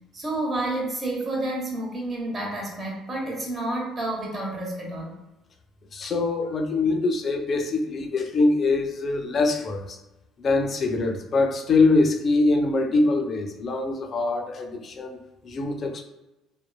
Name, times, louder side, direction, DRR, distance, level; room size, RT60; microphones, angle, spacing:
voice 1, 0.1-5.1, right 1 dB, 35° right, -2 dB, 0.9 m, -30 dB
voice 2, 5.9-10.0 10.4-16.0, left 3 dB, 45° left, 4 dB, 0.4 m, -23 dB
2.9 x 2.1 x 2.2 m, 0.97 s
supercardioid pair, 95°, 0 cm